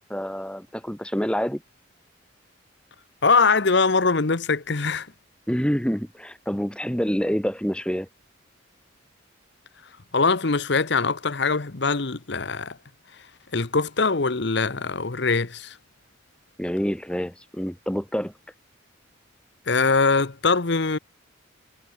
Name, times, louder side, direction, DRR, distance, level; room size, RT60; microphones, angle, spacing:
voice 1, 0.1-1.6 5.5-8.1 16.6-18.3, equal, 5° left, 1.9 m, -27 dB
voice 2, 3.2-5.1 10.1-12.8 13.5-15.8 19.7-21.0, left 4 dB, 60° left, 1.1 m, -22 dB
head